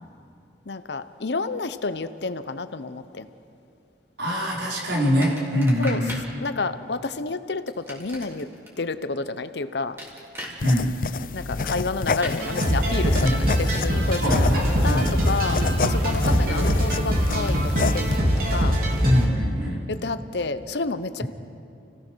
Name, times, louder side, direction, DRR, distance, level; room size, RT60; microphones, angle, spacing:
voice 1, 0.7-3.3 5.8-6.0 6.4-8.5 8.8-10.0 11.3-18.8 19.9-21.2, left 3 dB, 75° left, 12 dB, 0.9 m, -30 dB
voice 2, 4.2-6.1 10.6-11.0 13.2-13.4 14.2-15.3 16.3-16.6 19.0-19.8, equal, 90° right, -3 dB, 4.9 m, -24 dB
sound 1, 5.2-6.3 7.7-8.7 10.0-10.6 12.2-12.4, equal, 15° right, 3.4 m, -36 dB
sound 2, 10.6-18.2, left 4 dB, 50° left, 0.5 m, -30 dB
sound 3, 12.4-19.3, equal, 55° right, 3.2 m, -22 dB
29.5 x 17.0 x 6.3 m, 2.6 s
head